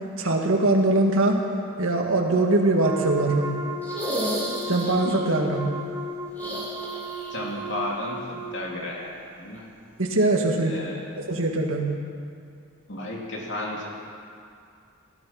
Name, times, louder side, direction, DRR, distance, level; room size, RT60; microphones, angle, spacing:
voice 1, 0.2-1.4 1.8-3.5 4.7-5.6 10.0-10.8 11.2-11.9, right 2 dB, 70° right, 1 dB, 1.9 m, -22 dB
Wind instrument woodwind instrument, 2.8-8.6, right 1 dB, 15° right, 0.7 m, -34 dB
sound 1, 3.8-5.2 6.3-7.5 7.8-7.9 9.5-9.6, equal, 10° left, 2.6 m, -32 dB
voice 2, 7.3-9.7 10.7-11.1 12.9-13.9, left 1 dB, 55° left, -2 dB, 2.8 m, -33 dB
17.5 x 12.0 x 5.9 m, 2.4 s
head